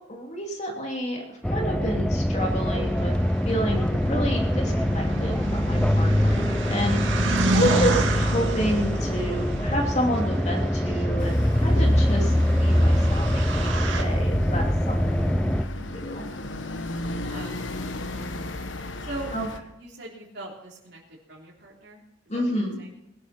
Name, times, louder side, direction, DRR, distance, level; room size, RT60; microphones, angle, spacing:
voice 1, 0.1-1.2 1.4-3.1 3.4-7.0 7.5-15.3 15.7-16.3 19.3-19.5 22.3-22.8, equal, 35° left, 1 dB, 2.9 m, -29 dB
sound 1, 1.4-15.7, equal, 5° left, 0.5 m, -23 dB
sound 2, 2.4-14.0, right 2 dB, 75° right, 2.1 m, -31 dB
sound 3, 11.2-19.6, left 2 dB, 70° left, 1.2 m, -35 dB
voice 2, 17.2-18.3 19.0-19.3 19.8-21.0 21.3-23.1, right 2 dB, 60° right, -3 dB, 3.5 m, -42 dB
20.0 x 12.0 x 4.4 m, 0.86 s
head